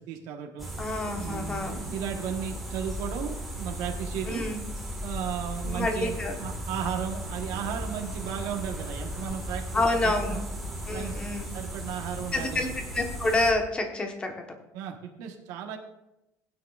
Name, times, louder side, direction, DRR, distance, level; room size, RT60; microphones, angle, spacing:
voice 1, 0.1-0.7 1.2-4.4 5.0-10.4 10.9-11.3 11.5-12.6 14.7-15.8, right 8 dB, 85° right, 2 dB, 1.3 m, -35 dB
sound 1, 0.6-13.5, equal, ahead, 1.7 m, -36 dB
voice 2, 0.8-1.8 4.3-4.6 5.6-6.4 9.7-10.4 10.9-11.5 12.3-12.7 12.9-14.3, left 2 dB, 15° left, 4 dB, 1.2 m, -28 dB
16.5 x 9.5 x 2.5 m, 0.90 s
cardioid pair, 180°, 6 cm